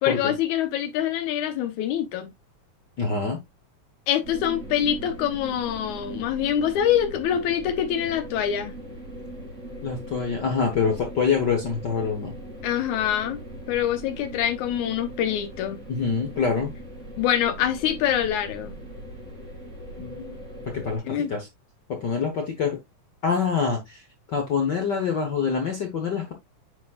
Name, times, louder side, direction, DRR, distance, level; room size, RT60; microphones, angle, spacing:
voice 1, 0.0-2.3 4.1-8.7 12.6-13.4 13.7-15.8 17.2-18.7 21.0-21.3, left 10 dB, 85° left, 2.3 m, -25 dB
voice 2, 3.0-3.4 9.8-12.3 15.9-16.7 20.0-20.4 20.7-21.5 21.9-22.8 23.2-24.0 24.3-26.3, left 5 dB, 60° left, 1.1 m, -25 dB
sound 1, 4.2-21.0, right 1 dB, 25° right, 2.9 m, -40 dB
8.9 x 4.8 x 2.4 m
omnidirectional pair, 3.4 m